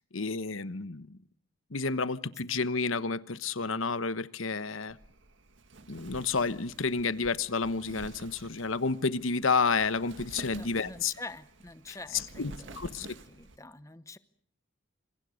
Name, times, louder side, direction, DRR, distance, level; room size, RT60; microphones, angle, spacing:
voice 1, 0.1-1.2 1.7-5.0 5.9-11.1 11.9-12.0 12.4-13.1, left 4 dB, 85° left, 14 dB, 1.2 m, -30 dB
Wind, 4.9-13.6, right 2 dB, 65° right, 1.7 m, -50 dB
voice 2, 10.5-13.0 13.3-14.2, left 2 dB, 15° left, 13 dB, 1.0 m, -46 dB
27.0 x 26.5 x 6.5 m, 0.64 s
head